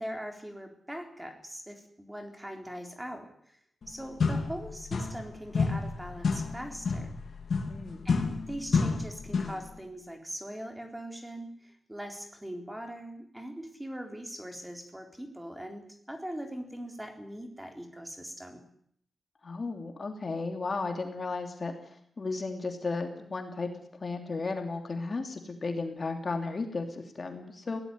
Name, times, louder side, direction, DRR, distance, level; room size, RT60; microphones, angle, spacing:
voice 1, 0.0-3.6 3.9-7.1 8.0-18.7 27.7-27.8, equal, 10° right, 4 dB, 3.8 m, -41 dB
sound 1, 3.8-3.9 4.2-5.3 5.5-9.7, left 4 dB, 65° left, 3.1 m, -30 dB
voice 2, 7.7-8.1 19.4-21.7 22.2-23.7 24.0-27.8, left 3 dB, 40° left, 5 dB, 3.1 m, -34 dB
22.0 x 17.5 x 9.8 m, 0.67 s
wide cardioid pair, 140°, 0 cm